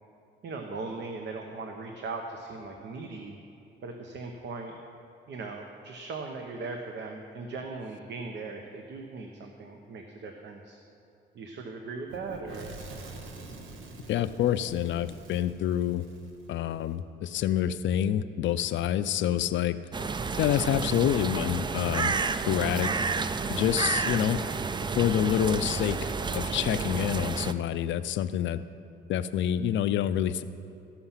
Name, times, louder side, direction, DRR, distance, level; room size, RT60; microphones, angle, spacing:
voice 1, 0.4-3.4 3.8-4.8 5.3-10.8 11.3-12.8, right 3 dB, 65° right, 3 dB, 0.9 m, -39 dB
Fire / Explosion, 12.1-16.9, right 2 dB, 80° right, 1.1 m, -46 dB
voice 2, 14.1-16.0 16.5-19.8 20.4-22.1 22.4-22.9 23.5-24.4 25.0-28.6 29.1-30.4, left 10 dB, 70° left, 12 dB, 0.5 m, -27 dB
sound 1, 19.9-27.5, right 4 dB, 25° right, 0.4 m, -30 dB
14.5 x 5.8 x 5.7 m, 2.7 s
cardioid pair, 90°, 20 cm